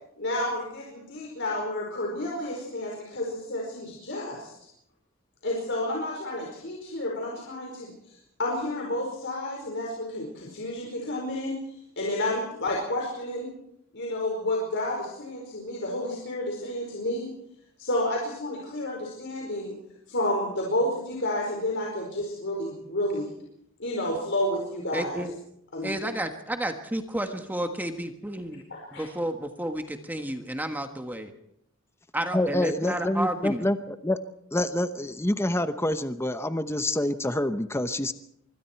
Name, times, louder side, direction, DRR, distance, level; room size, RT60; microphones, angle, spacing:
voice 1, 0.2-4.5 5.4-7.9 8.4-11.6 12.0-13.5 13.9-17.3 17.8-19.7 20.1-23.3 23.8-25.2 25.7-25.9 28.7-29.0, left 1 dB, 60° left, -1 dB, 5.0 m, -30 dB
voice 2, 24.9-25.3 25.8-28.6 28.9-31.3 32.1-33.6, right 1 dB, 10° right, 5 dB, 1.5 m, -31 dB
voice 3, 32.3-34.2 34.5-38.1, left 1 dB, 15° left, 10 dB, 0.9 m, -27 dB
25.5 x 23.5 x 4.6 m, 0.74 s
head